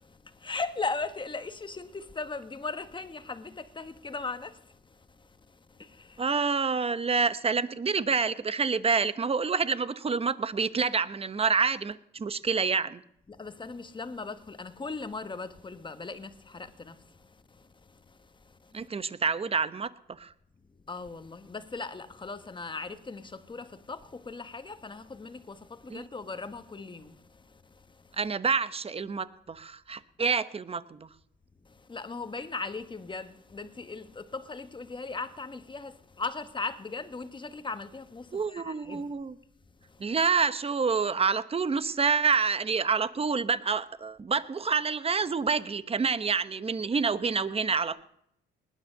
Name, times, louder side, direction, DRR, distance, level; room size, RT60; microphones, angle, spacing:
voice 1, 0.0-6.3 13.3-18.9 20.7-28.2 31.6-39.1 39.8-40.1, left 3 dB, 25° left, 1.3 m, -39 dB
voice 2, 6.2-13.0 18.7-20.3 25.9-26.0 28.2-31.1 38.3-39.4 40.0-48.0, right 5 dB, 30° right, 1.0 m, -28 dB
19.5 x 9.8 x 6.6 m
cardioid pair, 90°, 20 cm